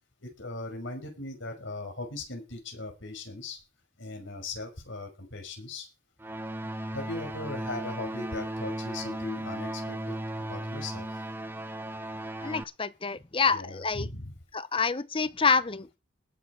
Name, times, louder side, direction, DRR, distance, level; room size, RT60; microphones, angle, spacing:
voice 1, 0.2-3.6 4.0-5.9 6.6-11.2 13.5-14.3, left 2 dB, 75° left, 5.8 m, -39 dB
sound 1, 6.2-12.6, right 1 dB, 10° right, 0.8 m, -36 dB
voice 2, 12.4-14.1 14.5-15.9, left 5 dB, 25° left, 0.7 m, -27 dB
19.5 x 7.5 x 4.7 m
head